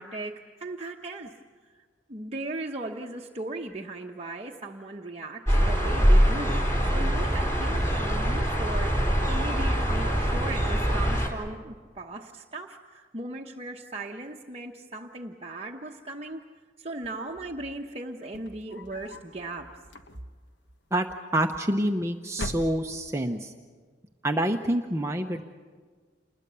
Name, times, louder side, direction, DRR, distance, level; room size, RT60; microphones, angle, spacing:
voice 1, 0.0-1.3 2.1-16.4 16.8-19.7, right 2 dB, 30° right, 0 dB, 1.0 m, -38 dB
sound 1, 5.5-11.3, equal, 15° left, 3.5 m, -23 dB
sound 2, 18.1-19.3 19.8-20.5 21.5-22.0 22.3-23.2, left 1 dB, 60° left, 1.3 m, -40 dB
voice 2, 21.3-23.5 24.2-25.4, right 1 dB, 15° right, 4 dB, 0.8 m, -27 dB
28.5 x 21.0 x 7.0 m, 1.6 s
head